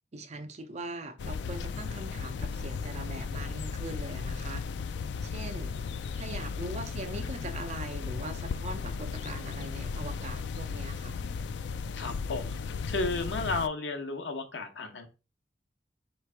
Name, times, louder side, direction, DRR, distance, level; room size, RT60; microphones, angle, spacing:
voice 1, 0.1-4.7 5.2-5.7 6.2-11.2, right 2 dB, 40° right, 0.6 m, -41 dB
sound 1, 1.2-13.7, left 5 dB, 70° left, 0.3 m, -35 dB
voice 2, 11.9-12.6 12.9-15.1, left 3 dB, 90° left, 0.9 m, -33 dB
3.3 x 3.2 x 4.5 m
head